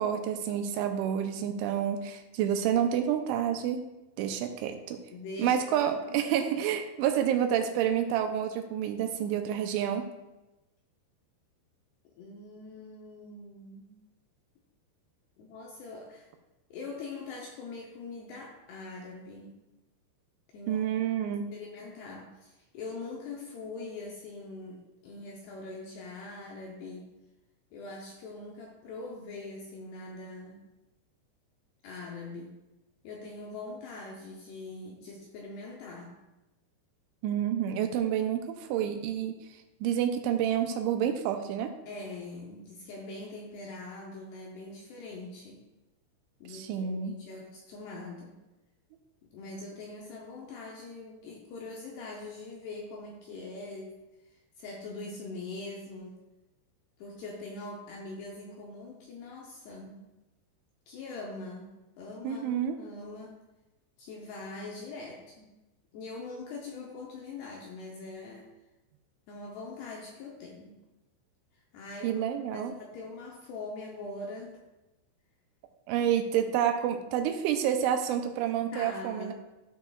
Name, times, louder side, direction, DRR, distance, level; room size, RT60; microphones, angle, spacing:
voice 1, 0.0-3.9 4.2-5.0 5.4-10.1 20.7-21.5 37.2-39.4 39.8-41.7 46.5-47.2 62.2-62.8 72.0-72.7 75.9-79.3, right 9 dB, 80° right, 6 dB, 2.9 m, -29 dB
voice 2, 5.1-6.4 12.2-13.9 15.4-16.3 16.7-19.5 20.5-20.8 21.1-27.1 27.7-30.6 31.8-32.6 33.0-36.2 41.9-45.6 46.4-48.3 49.3-54.0 54.2-56.2 57.0-60.1 60.9-63.4 64.0-65.5 65.9-68.5 69.3-70.8 71.7-72.2 72.5-74.6 78.7-79.3, left 3 dB, 75° left, -1 dB, 2.5 m, -43 dB
13.5 x 6.3 x 2.3 m, 1.0 s
omnidirectional pair, 5.5 m